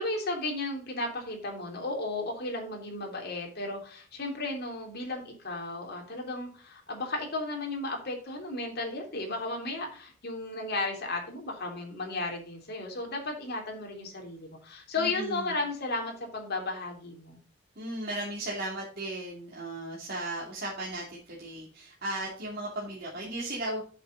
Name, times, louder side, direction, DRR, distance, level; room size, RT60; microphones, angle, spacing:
voice 1, 0.0-17.4, left 2 dB, 55° left, 1 dB, 3.1 m, -34 dB
voice 2, 15.0-15.6 17.8-23.8, right 1 dB, 50° right, -4 dB, 2.6 m, -36 dB
8.2 x 7.5 x 3.9 m, 0.41 s
head